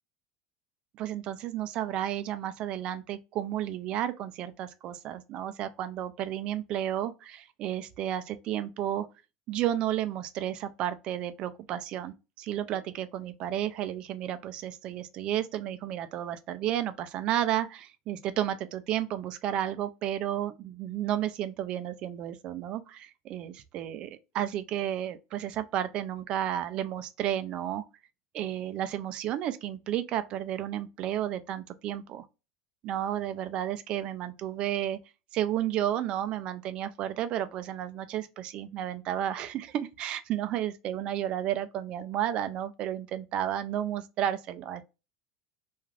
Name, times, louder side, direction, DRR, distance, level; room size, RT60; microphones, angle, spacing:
voice 1, 1.0-9.1 9.5-24.1 24.3-27.8 28.3-32.2 32.8-35.0 35.3-44.8, right 11 dB, 40° right, 0.3 m, -32 dB
2.4 x 2.3 x 3.2 m
supercardioid pair, 150°, 2 cm